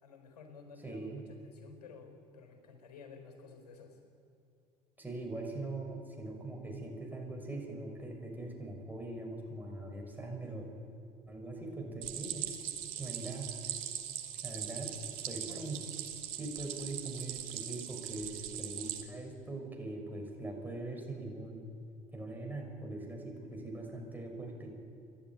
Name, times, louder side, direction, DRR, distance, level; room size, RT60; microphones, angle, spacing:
voice 1, 0.0-4.0, left 5 dB, 70° left, 5 dB, 4.3 m, -53 dB
voice 2, 0.8-1.2 5.0-10.7 11.3-12.5 12.8-13.5 14.4-14.9 15.3-15.9 16.4-21.6 22.1-24.7, right 2 dB, 10° right, 0 dB, 6.3 m, -42 dB
Stream, 12.0-19.0, right 11 dB, 65° right, 2.1 m, -41 dB
27.5 x 11.5 x 9.4 m, 2.5 s
figure-of-eight pair, 60°, 21 cm